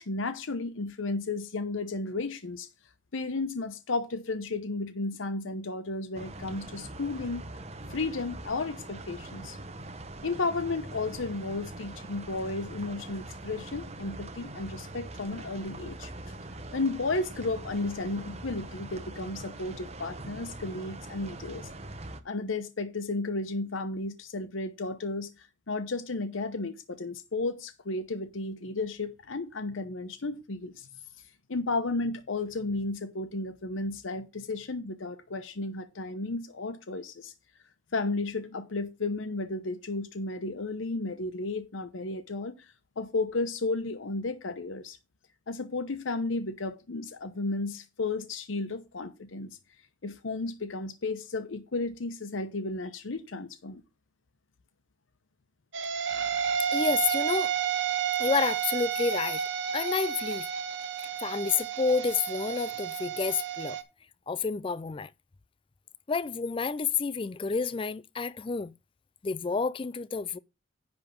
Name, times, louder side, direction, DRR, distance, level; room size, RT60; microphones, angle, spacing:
voice 1, 0.0-2.7 3.1-7.4 7.9-9.6 10.2-16.1 16.7-21.7 22.2-25.3 25.7-30.9 31.5-37.3 37.9-42.5 43.0-45.0 45.5-49.5 50.0-53.8, left 3 dB, 90° left, 0.8 m, -33 dB
sound 1, 6.1-22.2, right 2 dB, 35° right, 0.9 m, -43 dB
sound 2, 55.7-63.8, right 8 dB, 70° right, 1.0 m, -31 dB
voice 2, 56.7-57.5 58.2-59.4 59.7-60.5 61.2-63.8 64.3-65.1 66.1-68.7 69.2-70.4, left 5 dB, 25° left, 0.4 m, -29 dB
10.5 x 3.5 x 7.0 m
head